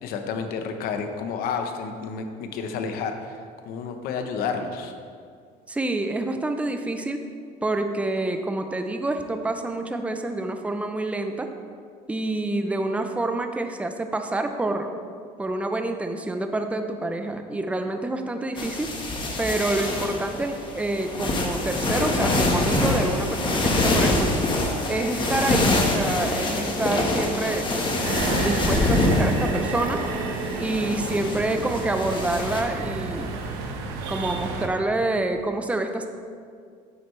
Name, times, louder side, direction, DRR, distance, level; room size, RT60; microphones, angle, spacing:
voice 1, 0.0-3.4 3.6-4.9, left 5 dB, 70° left, 6 dB, 1.0 m, -30 dB
voice 2, 5.7-7.2 7.6-11.5 12.1-14.9 15.4-18.9 19.4-24.3 24.9-27.7 28.4-30.0 30.6-33.3 34.1-36.1, right 2 dB, 10° right, 6 dB, 0.6 m, -27 dB
sound 1, 18.6-32.6, left 2 dB, 30° left, 1.5 m, -25 dB
sound 2, 28.0-34.7, right 4 dB, 85° right, 1.1 m, -31 dB
10.0 x 7.8 x 3.3 m, 2.2 s
cardioid pair, 110°, 16 cm